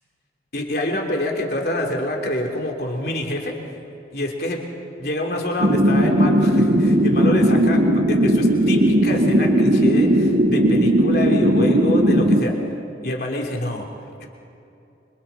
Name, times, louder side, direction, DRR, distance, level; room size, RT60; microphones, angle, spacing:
voice 1, 0.5-3.5 4.1-4.6 5.0-12.5 13.0-13.9 14.2-14.3, left 1 dB, 60° left, 0 dB, 3.4 m, -26 dB
sound 1, 5.6-12.4, right 1 dB, 55° right, 1.8 m, -17 dB
28.0 x 26.5 x 4.3 m, 2.7 s
head